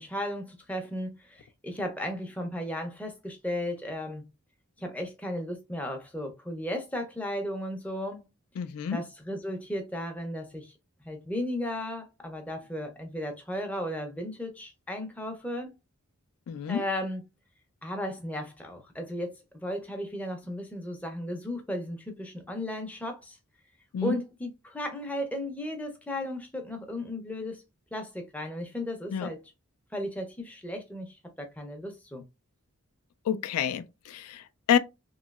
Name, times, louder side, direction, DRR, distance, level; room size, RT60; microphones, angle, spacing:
voice 1, 0.0-4.2 4.8-8.3 8.9-10.7 11.0-15.7 16.7-17.2 17.8-23.4 24.0-27.6 27.9-29.4 29.9-32.2, left 1 dB, 5° left, 0.4 m, -35 dB
voice 2, 8.6-9.0 16.5-16.8 23.9-24.2 29.1-29.3 33.3-34.8, left 8 dB, 90° left, 0.3 m, -28 dB
3.0 x 2.7 x 2.3 m
head